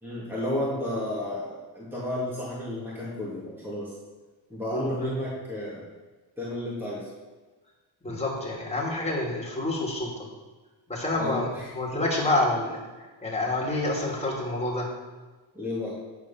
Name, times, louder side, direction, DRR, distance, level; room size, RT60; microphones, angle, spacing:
voice 1, 0.0-3.9 4.5-5.8 6.4-7.1 11.2-12.0 15.5-15.9, left 1 dB, 5° right, -7 dB, 2.4 m, -32 dB
voice 2, 4.7-5.1 8.0-10.1 10.9-12.8 13.2-14.9, left 2 dB, 15° left, -3 dB, 3.0 m, -28 dB
9.5 x 4.7 x 5.8 m, 1.3 s
cardioid pair, 80°, 46 cm